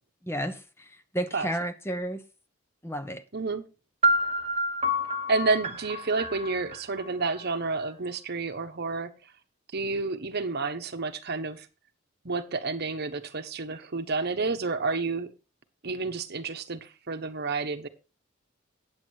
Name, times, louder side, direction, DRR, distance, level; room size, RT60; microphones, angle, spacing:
voice 1, 0.2-2.2 2.8-3.2, equal, 10° left, 0.8 m, -32 dB
voice 2, 3.3-3.6 5.3-9.1 9.7-11.7 12.2-15.3 15.8-17.9, right 4 dB, 55° right, 1.0 m, -30 dB
sound 1, 4.0-7.9, equal, 30° right, 0.8 m, -29 dB
8.9 x 8.0 x 4.5 m
head